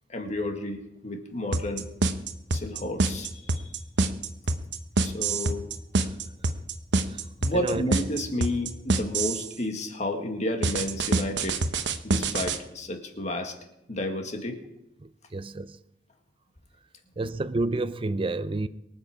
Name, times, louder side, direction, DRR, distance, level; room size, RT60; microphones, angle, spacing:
voice 1, 0.1-1.8 2.5-3.7 5.0-5.7 7.4-11.6 12.0-13.5 13.9-14.6, left 1 dB, 40° left, 2.0 m, -31 dB
sound 1, 1.5-9.5 10.6-12.6, right 3 dB, 80° right, 1.0 m, -25 dB
voice 2, 7.1-7.8 15.0-15.8 17.2-18.7, right 2 dB, 30° right, 0.5 m, -30 dB
23.5 x 7.9 x 5.0 m
head